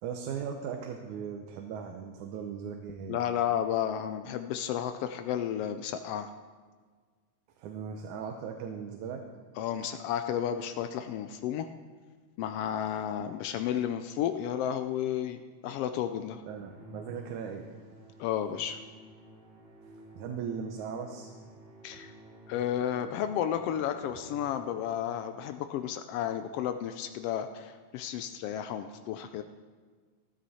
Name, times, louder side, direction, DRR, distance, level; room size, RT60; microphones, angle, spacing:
voice 1, 0.0-3.2 7.6-9.2 16.5-17.7 20.1-21.3, right 7 dB, 90° right, 4 dB, 2.3 m, -38 dB
voice 2, 3.1-6.3 9.6-11.7 12.4-16.4 18.2-18.8 21.8-22.1 22.5-29.4, left 10 dB, 85° left, 8 dB, 1.3 m, -32 dB
Musical instrument, 16.6-25.1, right 1 dB, 70° right, 3.2 m, -52 dB
14.0 x 13.0 x 4.2 m, 1.5 s
omnidirectional pair, 3.3 m